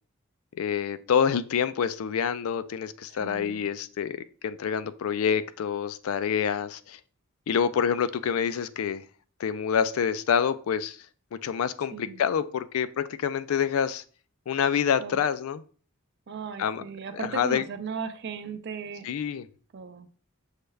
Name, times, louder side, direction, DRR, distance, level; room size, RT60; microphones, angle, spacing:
voice 1, 0.6-4.2 4.4-7.0 7.5-9.0 9.4-11.0 11.4-14.0 14.5-15.6 16.6-16.8 17.1-17.6 19.0-19.4, left 7 dB, 75° left, 14 dB, 0.3 m, -27 dB
voice 2, 3.2-3.6 11.9-12.2 15.0-15.2 16.3-19.1 19.7-20.1, right 5 dB, 55° right, 9 dB, 0.4 m, -37 dB
6.4 x 2.3 x 3.2 m, 0.41 s
head